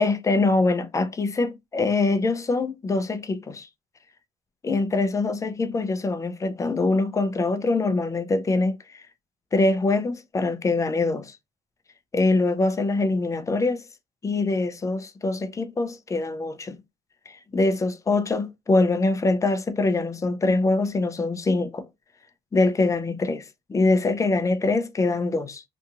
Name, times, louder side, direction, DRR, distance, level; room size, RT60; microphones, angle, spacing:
voice 1, 0.0-3.7 4.6-9.0 9.5-11.4 12.1-13.9 14.2-16.8 17.3-21.9 22.5-25.6, left 3 dB, 20° left, 0.4 m, -24 dB
2.7 x 2.5 x 2.4 m
cardioid pair, 110°, 17 cm